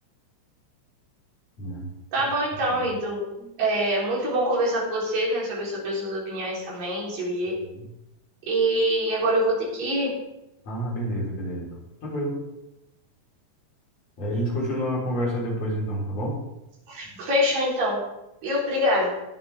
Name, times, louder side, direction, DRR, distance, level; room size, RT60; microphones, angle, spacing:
voice 1, 2.1-3.3 3.6-7.6 8.5-10.1 16.9-18.0 18.4-19.2, equal, 85° right, -5 dB, 5.3 m, -25 dB
voice 2, 10.7-11.7 12.0-12.5 14.2-16.4, equal, 50° left, -5 dB, 4.8 m, -29 dB
20.5 x 7.6 x 3.5 m, 0.90 s
omnidirectional pair, 3.8 m